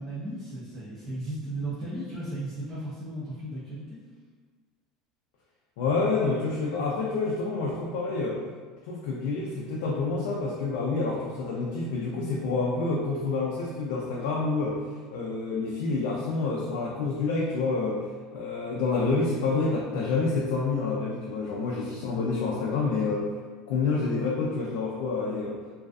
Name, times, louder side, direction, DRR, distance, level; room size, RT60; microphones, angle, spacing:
voice 1, 0.0-4.0, right 1 dB, 10° right, -12 dB, 0.4 m, -35 dB
voice 2, 5.8-8.4 8.9-14.8 15.1-18.0 18.3-23.3 23.7-25.6, left 3 dB, 75° left, -4 dB, 0.3 m, -28 dB
2.3 x 2.3 x 2.4 m, 1.6 s
cardioid pair, 180°, 0 cm